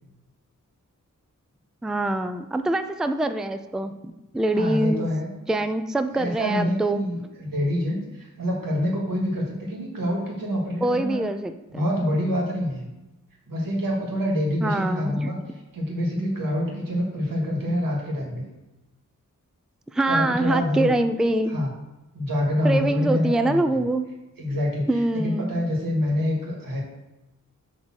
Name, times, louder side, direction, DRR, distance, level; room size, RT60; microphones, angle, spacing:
voice 1, 1.8-5.1 5.5-7.0 10.8-12.1 14.6-15.3 19.9-21.5 22.6-24.1 24.9-25.5, right 2 dB, ahead, 9 dB, 0.4 m, -24 dB
voice 2, 4.6-5.3 6.1-11.3 11.7-12.9 13.5-15.4 15.7-18.5 20.1-20.9 21.5-21.7 22.1-23.8 24.4-26.8, left 1 dB, 90° right, -2 dB, 2.2 m, -26 dB
8.0 x 3.7 x 6.3 m, 1.0 s
wide cardioid pair, 110°, 33 cm